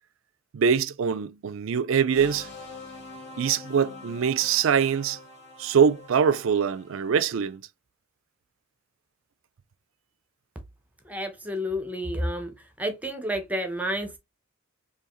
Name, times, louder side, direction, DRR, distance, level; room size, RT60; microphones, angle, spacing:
voice 1, 0.5-2.5 3.4-5.2 5.6-7.6, right 7 dB, 70° right, 0.4 m, -23 dB
sound 1, 2.1-7.5, left 3 dB, 50° left, 1.6 m, -45 dB
voice 2, 11.1-12.5 12.8-14.2, equal, 5° right, 0.7 m, -30 dB
4.7 x 2.9 x 3.0 m
head